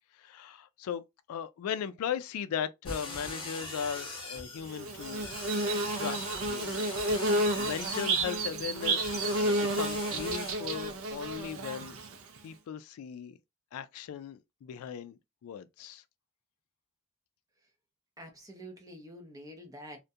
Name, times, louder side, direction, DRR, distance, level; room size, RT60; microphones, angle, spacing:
voice 1, 0.2-1.0 1.3-5.3 5.9-6.9 7.6-12.0 12.4-13.4 13.7-16.0, left 8 dB, 85° left, 0.3 m, -38 dB
sound 1, 2.8-10.5, left 2 dB, 20° left, 0.8 m, -42 dB
Bird / Buzz, 4.7-12.4, right 2 dB, 75° right, 0.5 m, -31 dB
voice 2, 18.2-20.0, equal, 15° right, 0.5 m, -47 dB
2.3 x 2.1 x 2.6 m
head